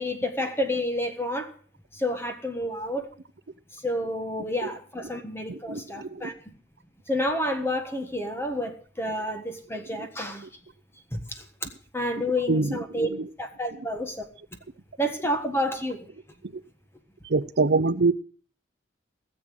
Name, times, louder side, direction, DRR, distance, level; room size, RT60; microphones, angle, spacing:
voice 1, 0.0-1.5 1.9-3.1 3.7-6.5 7.1-10.5 11.1-13.1 13.4-14.3 15.0-16.1, left 1 dB, 15° left, 1.4 m, -30 dB
voice 2, 5.5-6.1 12.5-12.8 17.3-18.1, right 3 dB, 60° right, 0.7 m, -23 dB
17.5 x 7.4 x 6.4 m
head